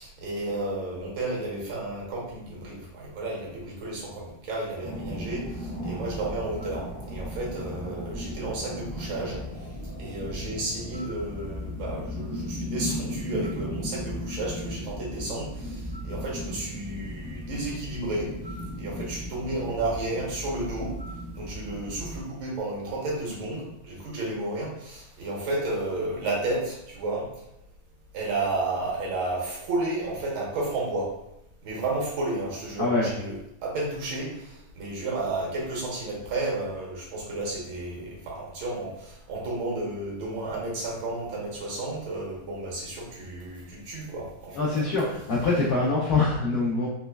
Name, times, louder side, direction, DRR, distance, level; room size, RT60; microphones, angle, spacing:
voice 1, 0.0-9.4 10.0-18.3 18.8-20.9 21.3-27.3 28.1-31.1 31.6-33.4 33.6-44.7, right 2 dB, 75° right, -3 dB, 1.8 m, -32 dB
sound 1, 4.8-22.2, equal, 10° left, 0.4 m, -36 dB
voice 2, 44.6-46.9, left 3 dB, 75° left, -5 dB, 0.9 m, -24 dB
4.1 x 3.0 x 2.3 m, 0.84 s
omnidirectional pair, 2.3 m